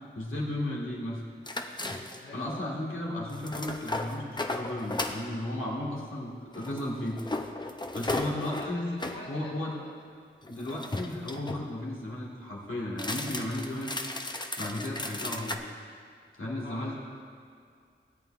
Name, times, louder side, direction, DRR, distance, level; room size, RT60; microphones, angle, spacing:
voice 1, 0.2-1.2 2.3-7.2 7.9-8.9 9.3-9.7 10.5-13.9 14.3-15.6 16.4-16.9, left 1 dB, 85° left, -5 dB, 2.0 m, -34 dB
sound 1, 1.5-2.4 3.3-5.2 6.5-9.2 10.4-11.7 12.9-15.6, left 2 dB, 20° left, 0.6 m, -35 dB
voice 2, 2.2-2.7 8.3-9.9 16.6-16.9, left 2 dB, 65° left, -4 dB, 1.0 m, -44 dB
17.0 x 9.0 x 2.5 m, 2.2 s
wide cardioid pair, 75°, 20 cm